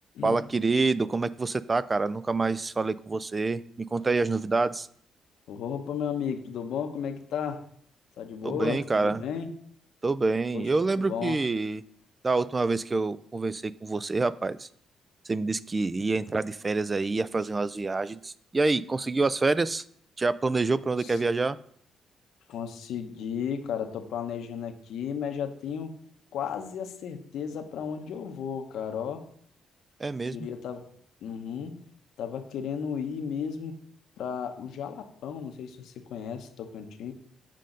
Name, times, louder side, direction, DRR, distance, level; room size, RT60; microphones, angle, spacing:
voice 1, 0.2-4.9 8.4-9.2 10.0-11.8 12.2-14.7 15.3-19.8 20.2-21.6 30.0-30.5, right 3 dB, 25° right, 17 dB, 0.3 m, -27 dB
voice 2, 5.5-7.6 8.2-9.5 10.5-10.7 11.0-11.4 21.0-21.1 22.5-25.9 26.3-29.2 30.3-30.9 31.2-31.8 32.2-33.7 34.2-37.1, left 7 dB, 80° left, 6 dB, 0.9 m, -34 dB
7.5 x 5.2 x 3.9 m, 0.63 s
cardioid pair, 90°, 0 cm